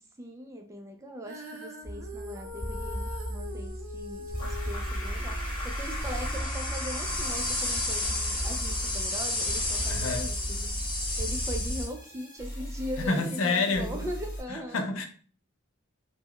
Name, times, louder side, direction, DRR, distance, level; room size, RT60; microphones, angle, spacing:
voice 1, 0.2-5.3 5.8-10.7 11.2-14.8, equal, 15° right, 3 dB, 0.3 m, -40 dB
Female singing, 1.2-7.5, left 2 dB, 75° right, 0.5 m, -44 dB
sound 1, 1.8-11.9, left 1 dB, 25° left, 0.7 m, -32 dB
sound 2, 3.7-3.8 4.3-6.4 7.0-7.7 8.4-9.1 9.7-14.4, equal, 40° left, 1.2 m, -38 dB
voice 2, 9.9-10.3 13.0-13.9 14.5-15.1, left 3 dB, 75° left, 5 dB, 0.5 m, -28 dB
3.6 x 2.1 x 2.2 m, 0.44 s
head